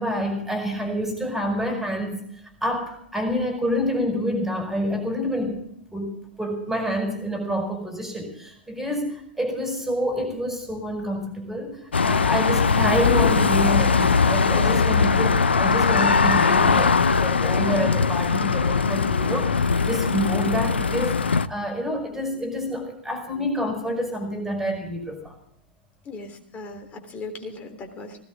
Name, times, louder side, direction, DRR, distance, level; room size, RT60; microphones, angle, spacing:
voice 1, 0.0-2.2 2.6-5.6 5.9-25.3, equal, 5° right, 3 dB, 5.1 m, -28 dB
sound 1, 11.9-21.5, left 5 dB, 80° left, 0.7 m, -20 dB
voice 2, 26.0-28.2, left 3 dB, 25° left, 5 dB, 3.5 m, -38 dB
19.5 x 17.0 x 3.6 m, 0.69 s
figure-of-eight pair, 110°, 6 cm